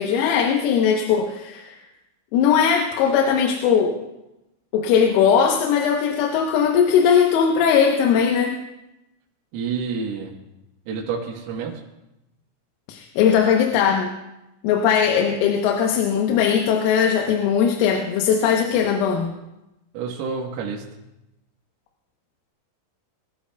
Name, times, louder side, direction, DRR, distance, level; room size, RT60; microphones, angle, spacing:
voice 1, 0.0-1.8 2.3-4.0 4.7-8.6 12.9-14.1 14.6-19.3, left 7 dB, 90° left, 2 dB, 3.7 m, -19 dB
voice 2, 9.5-10.3 10.9-11.8 19.9-20.8, right 5 dB, 80° right, -2 dB, 4.0 m, -28 dB
24.0 x 13.0 x 2.3 m, 0.94 s
omnidirectional pair, 6.0 m